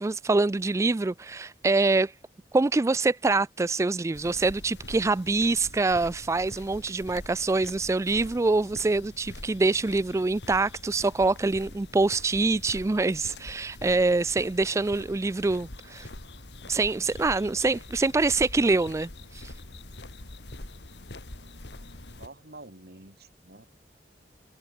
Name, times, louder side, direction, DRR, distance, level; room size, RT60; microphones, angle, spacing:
voice 1, 0.0-2.1 2.5-16.1 16.7-19.5, right 3 dB, 15° right, 0.3 m, -25 dB
sound 1, 4.1-22.3, left 2 dB, 75° left, 2.3 m, -44 dB
voice 2, 22.2-23.7, right 2 dB, 65° right, 4.9 m, -48 dB
head